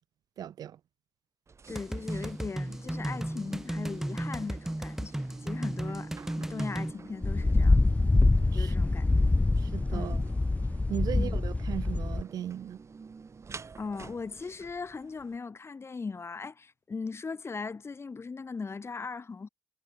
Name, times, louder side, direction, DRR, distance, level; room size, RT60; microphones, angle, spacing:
voice 1, 0.4-0.8 8.5-8.7 9.6-10.2 10.9-12.8, right 10 dB, 70° right, 1.3 m, -37 dB
sound 1, 1.5-15.4, right 5 dB, 45° right, 4.5 m, -49 dB
voice 2, 1.7-6.1 6.4-7.9 8.5-9.3 9.9-10.2 11.1-11.4 13.8-19.5, left 4 dB, 40° left, 5.2 m, -39 dB
sound 2, 1.7-6.9, right 1 dB, 5° right, 0.5 m, -35 dB
sound 3, 7.2-12.2, left 2 dB, 20° left, 1.2 m, -25 dB
supercardioid pair, 55°, 7 cm